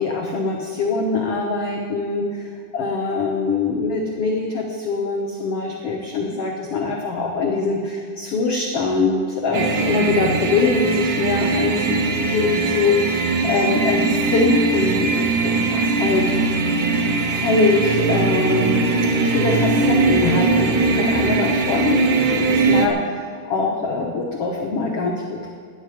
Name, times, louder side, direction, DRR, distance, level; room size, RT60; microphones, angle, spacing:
voice 1, 0.0-16.3 17.2-18.9 19.2-23.0 23.4-25.5, left 3 dB, 80° left, 0 dB, 1.3 m, -23 dB
sound 1, 9.5-22.9, right 3 dB, 70° right, 2.2 m, -20 dB
17.0 x 11.5 x 5.2 m, 2.2 s
omnidirectional pair, 4.6 m